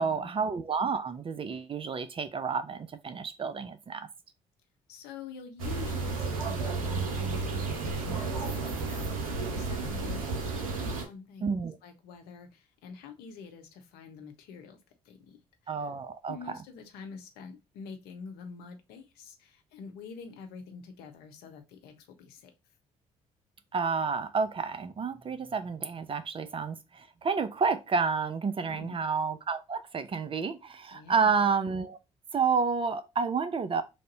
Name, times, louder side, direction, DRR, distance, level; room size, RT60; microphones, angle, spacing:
voice 1, 0.0-4.1 11.4-11.8 15.7-16.4 23.7-32.0 32.3-33.8, right 5 dB, 30° right, 0.5 m, -30 dB
voice 2, 4.9-14.8 15.0-15.7 16.3-22.5 28.6-29.0 30.9-31.4, left 5 dB, 65° left, 0.7 m, -46 dB
sound 1, 5.6-11.1, right 4 dB, 85° right, 0.6 m, -32 dB
3.3 x 2.6 x 3.9 m
figure-of-eight pair, 45°, 17 cm